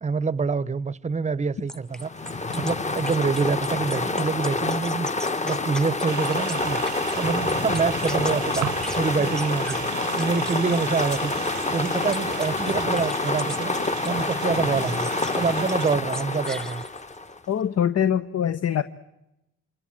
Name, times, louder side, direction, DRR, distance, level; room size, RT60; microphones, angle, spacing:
voice 1, 0.0-13.8 14.0-16.8, right 4 dB, 25° right, 0.9 m, -26 dB
sound 1, 1.7-7.2 7.5-9.0 9.4-14.2 14.8-15.4 15.7-17.2, equal, ahead, 1.0 m, -39 dB
sound 2, 2.0-17.4, left 3 dB, 25° left, 1.4 m, -27 dB
sound 3, 6.1-16.0, right 12 dB, 70° right, 0.9 m, -36 dB
voice 2, 17.5-18.8, left 9 dB, 55° left, 1.0 m, -23 dB
27.5 x 25.5 x 7.7 m
cardioid pair, 90°, 30 cm